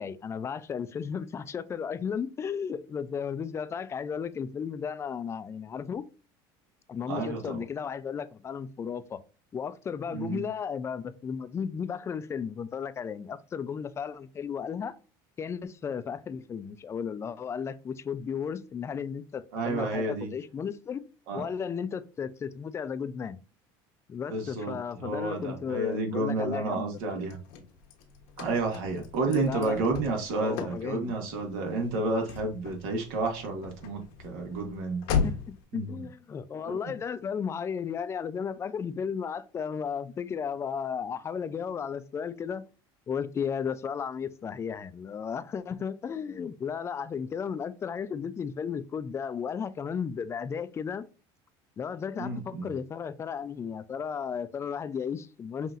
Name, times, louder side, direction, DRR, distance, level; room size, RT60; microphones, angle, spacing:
voice 1, 0.0-6.1 6.9-9.2 9.5-15.0 15.4-21.0 21.3-23.4 24.1-27.0 29.4-29.8 30.4-31.1 35.2-42.7 43.1-51.1 51.8-55.8, left 7 dB, 25° left, 0.4 m, -34 dB
voice 2, 7.1-7.6 10.1-10.4 19.5-20.3 21.3-21.4 24.3-27.4 28.4-35.0 35.7-36.0 36.6-36.8 52.2-52.7, right 3 dB, 80° right, 1.4 m, -31 dB
Car / Slam, 27.0-35.6, left 6 dB, 80° left, 1.0 m, -37 dB
5.6 x 2.7 x 2.5 m
supercardioid pair, 120°, 11 cm